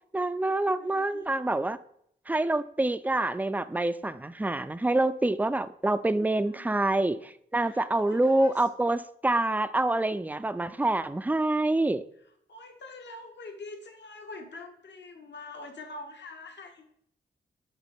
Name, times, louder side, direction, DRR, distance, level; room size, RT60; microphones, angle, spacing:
voice 1, 0.1-1.8 2.3-12.0, right 2 dB, 10° right, 14 dB, 0.4 m, -26 dB
voice 2, 0.7-1.3 6.4-6.7 7.6-8.7 12.2-16.9, left 3 dB, 60° left, 4 dB, 1.1 m, -45 dB
8.9 x 3.7 x 3.5 m, 0.70 s
cardioid pair, 50°, 21 cm